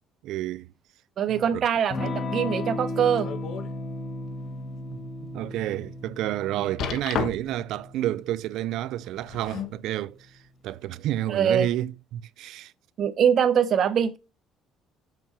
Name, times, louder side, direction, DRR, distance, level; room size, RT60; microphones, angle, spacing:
voice 1, 0.2-0.7 1.3-1.6 4.9-10.3 10.6-12.7, right 13 dB, 75° right, 0.4 m, -30 dB
voice 2, 1.2-3.3 6.6-6.7 11.3-11.7 13.0-14.2, right 8 dB, 50° right, 0.8 m, -23 dB
Electric guitar / Strum, 1.9-10.2, left 2 dB, 35° left, 1.4 m, -36 dB
sound 1, 2.9-3.7 4.2-4.3 4.9-5.0 6.8-7.7 9.0-9.8 10.7-10.8, left 7 dB, 60° left, 1.3 m, -32 dB
6.8 x 5.9 x 5.9 m
cardioid pair, 120°, 0 cm